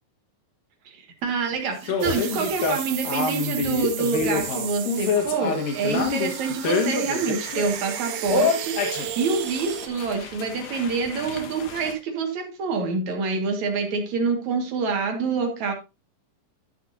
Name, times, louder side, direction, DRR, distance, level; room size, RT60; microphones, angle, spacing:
voice 1, 0.9-15.7, right 4 dB, 60° right, 2.9 m, -27 dB
sound 1, 1.9-7.8 8.3-11.9, left 5 dB, 75° left, 3.4 m, -27 dB
sound 2, 2.0-9.9, right 10 dB, 75° right, 2.5 m, -34 dB
12.5 x 7.0 x 2.6 m
omnidirectional pair, 4.1 m